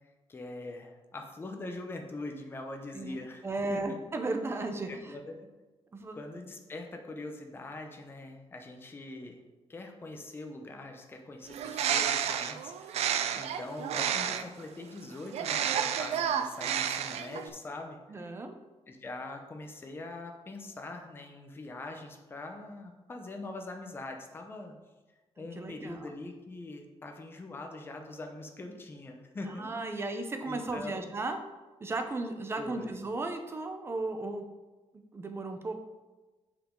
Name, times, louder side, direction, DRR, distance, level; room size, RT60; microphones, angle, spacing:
voice 1, 0.3-4.0 4.9-5.5 6.1-9.4 9.7-13.0 13.3-18.2 18.9-24.7 25.4-30.2 30.4-31.0 32.6-32.9, left 2 dB, 20° left, 3 dB, 0.8 m, -43 dB
voice 2, 2.9-5.2 5.9-6.2 18.1-18.6 25.4-26.1 29.4-31.4 31.8-34.5 35.1-35.8, right 2 dB, 25° right, 6 dB, 0.7 m, -35 dB
Bird, 11.5-14.6 15.3-17.5, right 9 dB, 85° right, 0.5 m, -31 dB
8.4 x 5.0 x 3.8 m, 1.2 s
wide cardioid pair, 170°, 11 cm